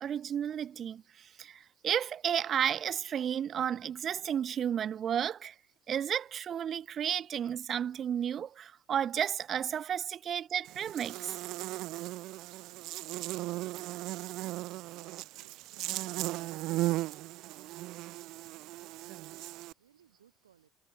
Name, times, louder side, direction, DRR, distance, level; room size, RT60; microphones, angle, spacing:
voice 1, 0.0-5.6 5.9-11.4, right 9 dB, 45° right, 0.4 m, -32 dB
Buzz, 10.7-19.7, right 17 dB, 65° right, 0.8 m, -37 dB
voice 2, 18.4-19.4 19.8-20.7, right 9 dB, 90° right, 5.3 m, -65 dB
hypercardioid pair, 65°, 0 cm